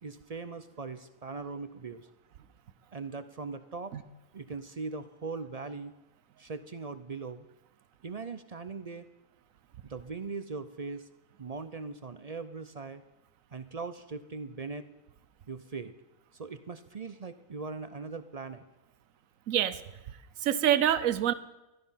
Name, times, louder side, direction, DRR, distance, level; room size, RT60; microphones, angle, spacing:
voice 1, 0.0-2.1 2.9-3.9 4.3-5.9 6.4-7.5 8.0-9.1 9.8-11.1 11.4-13.0 13.5-14.9 15.5-15.9 16.3-18.6, right 4 dB, 45° right, 12 dB, 0.5 m, -40 dB
voice 2, 19.5-19.8 20.4-21.3, right 10 dB, 85° right, 15 dB, 1.2 m, -25 dB
14.5 x 12.5 x 5.6 m, 0.99 s
omnidirectional pair, 1.4 m